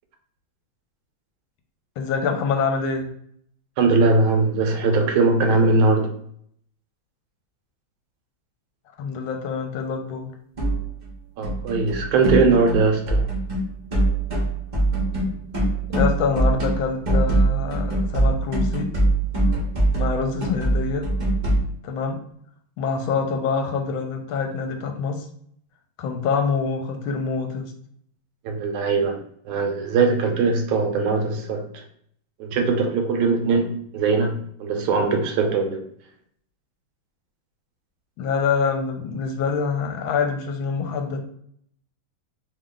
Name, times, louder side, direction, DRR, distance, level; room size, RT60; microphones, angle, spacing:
voice 1, 2.0-3.1 9.0-10.3 15.9-18.9 19.9-21.1 21.8-22.2 22.8-25.3 26.0-27.7 38.2-41.2, left 5 dB, 75° left, 4 dB, 1.3 m, -25 dB
voice 2, 3.8-6.1 11.4-13.3 28.4-29.2 29.4-31.8 32.4-35.8, right 3 dB, 80° right, 3 dB, 1.4 m, -20 dB
sound 1, 10.6-11.1 11.4-21.6, right 1 dB, 50° right, 0.5 m, -22 dB
3.3 x 2.3 x 3.6 m, 0.65 s
omnidirectional pair, 2.3 m